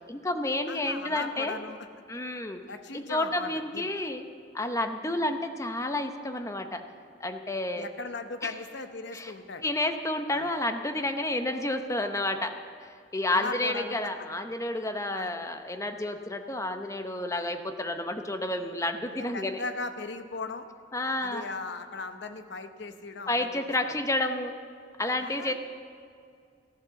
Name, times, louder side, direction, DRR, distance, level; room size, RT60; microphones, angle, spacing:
voice 1, 0.1-1.6 2.1-2.6 3.1-4.2 4.5-6.8 7.2-7.9 8.4-8.5 9.1-9.3 9.6-12.5 13.1-19.6 20.9-21.4 23.3-24.5 25.0-25.5, left 1 dB, 15° left, 6 dB, 0.8 m, -30 dB
voice 2, 0.7-1.8 2.7-3.9 7.7-9.7 10.3-10.5 13.3-14.0 15.1-15.3 19.3-20.7 21.2-23.9 25.2-25.5, left 3 dB, 65° left, 8 dB, 1.0 m, -38 dB
14.5 x 11.0 x 6.9 m, 2.3 s
head